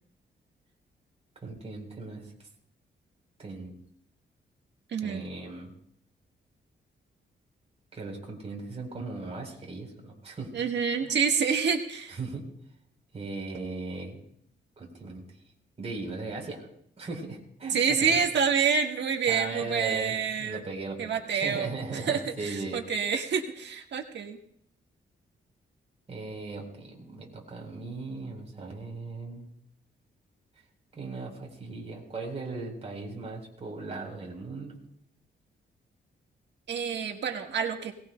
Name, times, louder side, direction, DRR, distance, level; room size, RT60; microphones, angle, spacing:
voice 1, 1.4-2.5 3.4-3.8 5.0-5.7 7.9-10.5 11.0-11.1 12.1-12.4 13.1-14.2 14.8-15.2 15.8-16.7 17.0-18.2 19.3-22.8 26.1-29.5 30.9-34.8, right 3 dB, 35° right, 0 dB, 3.9 m, -38 dB
voice 2, 4.9-5.2 10.5-12.2 17.7-20.6 21.0-21.7 22.1-24.4 36.7-37.9, right 6 dB, 75° right, 3 dB, 1.5 m, -27 dB
22.0 x 19.0 x 2.2 m, 0.68 s
wide cardioid pair, 130°, 19 cm